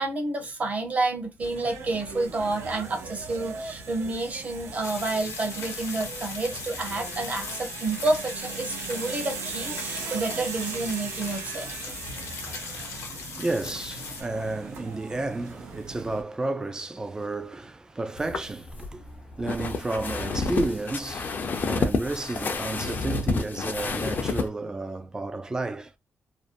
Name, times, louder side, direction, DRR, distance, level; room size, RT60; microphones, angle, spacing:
voice 1, 0.0-11.8 12.4-12.6, right 2 dB, 35° right, 0.8 m, -29 dB
sound 1, 1.4-16.2, right 5 dB, 85° right, 0.7 m, -39 dB
sound 2, 4.8-14.2, left 5 dB, 85° left, 0.8 m, -39 dB
voice 2, 12.6-25.9, right 2 dB, 15° right, 0.3 m, -32 dB
sound 3, 18.2-24.5, left 4 dB, 45° left, 0.5 m, -29 dB
2.5 x 2.0 x 2.5 m
wide cardioid pair, 140°, 4 cm